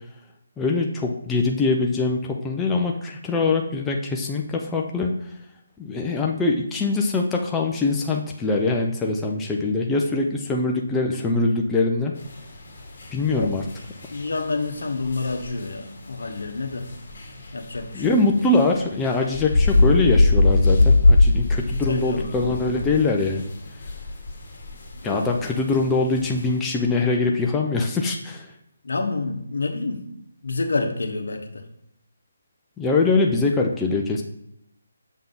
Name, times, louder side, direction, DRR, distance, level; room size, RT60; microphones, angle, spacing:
voice 1, 0.6-5.1 5.8-12.1 13.1-13.7 17.9-23.4 25.0-28.5 32.8-34.2, left 3 dB, 10° left, 0 dB, 0.5 m, -23 dB
sound 1, 12.2-26.6, left 2 dB, 45° left, 1.9 m, -24 dB
voice 2, 14.1-16.9 17.5-18.2 21.9-22.5 25.0-25.2 28.8-30.0 30.4-31.6, left 3 dB, 75° left, 4 dB, 1.1 m, -28 dB
7.1 x 3.6 x 3.9 m, 0.77 s
figure-of-eight pair, 155°, 0 cm